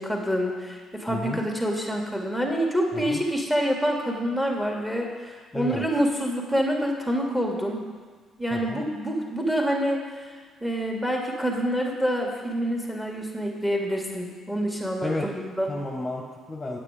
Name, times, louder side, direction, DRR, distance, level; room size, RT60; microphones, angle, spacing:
voice 1, 0.0-7.8 8.4-10.0 10.6-15.7, equal, 5° right, 1 dB, 2.2 m, -27 dB
voice 2, 1.1-1.4 2.9-3.2 5.5-5.9 8.5-8.8 15.0-15.3 15.7-16.8, left 2 dB, 20° left, -1 dB, 1.3 m, -32 dB
9.0 x 7.9 x 5.1 m, 1.5 s
figure-of-eight pair, 45°, 0 cm